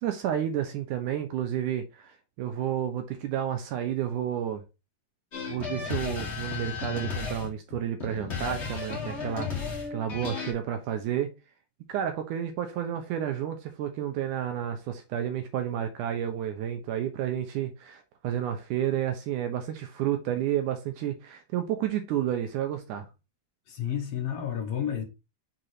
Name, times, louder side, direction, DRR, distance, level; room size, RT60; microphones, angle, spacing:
voice 1, 0.0-4.6 5.5-11.3 11.9-23.1, right 10 dB, 75° right, 1.9 m, -31 dB
sound 1, 5.3-10.5, left 5 dB, 30° left, 1.4 m, -34 dB
voice 2, 23.7-25.0, left 9 dB, 65° left, 1.6 m, -31 dB
6.5 x 3.8 x 4.2 m
omnidirectional pair, 4.2 m